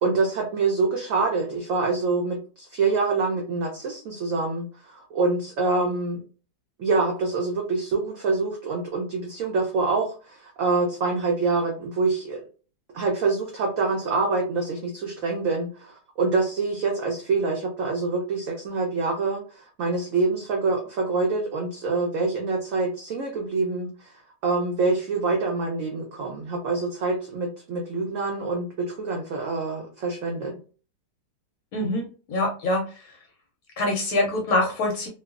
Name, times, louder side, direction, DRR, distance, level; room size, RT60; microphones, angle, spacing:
voice 1, 0.0-6.2 6.8-12.4 12.9-24.1 24.4-30.6, right 3 dB, 85° right, 1 dB, 0.7 m, -26 dB
voice 2, 31.7-33.2 33.8-35.1, left 2 dB, 70° left, 1 dB, 0.9 m, -25 dB
3.0 x 2.0 x 2.3 m, 0.38 s
omnidirectional pair, 2.0 m